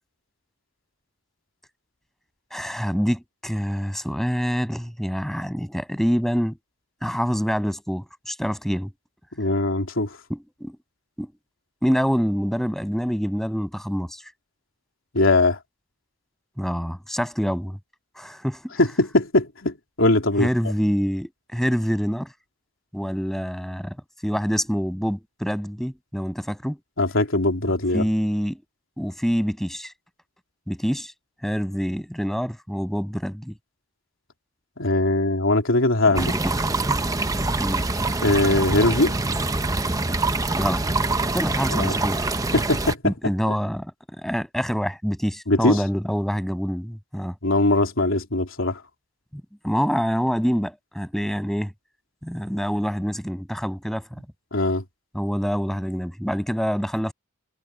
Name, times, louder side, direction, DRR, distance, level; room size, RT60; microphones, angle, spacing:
voice 1, 2.5-6.6 7.0-8.9 10.3-10.8 11.2-11.3 11.8-14.2 16.6-17.8 18.2-18.7 20.4-22.3 22.9-24.0 24.2-26.8 27.9-28.6 29.0-29.9 30.7-31.1 31.4-33.5 36.0-36.4 36.8-37.0 37.6-37.9 40.6-40.8 41.3-42.3 43.0-43.9 44.2-47.3 49.3-51.7 52.2-54.2 55.1-57.1, equal, ahead, 7.1 m, -26 dB
voice 2, 9.4-10.2 15.1-15.6 18.8-20.5 27.0-28.1 34.8-36.3 38.2-39.2 41.7-42.0 42.5-43.1 43.5-43.6 45.5-45.8 47.4-48.8 54.5-54.8, left 2 dB, 85° left, 3.4 m, -21 dB
sound 1, 36.2-43.0, right 2 dB, 15° right, 0.7 m, -25 dB
head